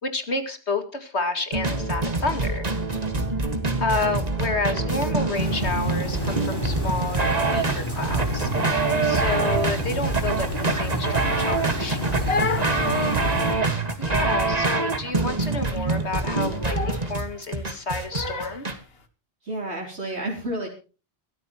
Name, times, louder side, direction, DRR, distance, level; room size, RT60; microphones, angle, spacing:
voice 1, 0.0-2.7 3.8-12.0 14.0-18.7, left 3 dB, 85° left, 7 dB, 2.6 m, -30 dB
sound 1, 1.5-18.8, right 3 dB, 35° right, 1.9 m, -25 dB
voice 2, 3.2-4.1 12.6-13.4 19.4-20.7, right 1 dB, 80° right, 0 dB, 4.2 m, -33 dB
sound 2, 5.3-13.6, equal, 20° left, 5.3 m, -30 dB
Crying sobbing, 11.9-18.8, left 4 dB, 65° left, 1.8 m, -33 dB
23.0 x 13.5 x 3.0 m, 0.35 s
omnidirectional pair, 1.1 m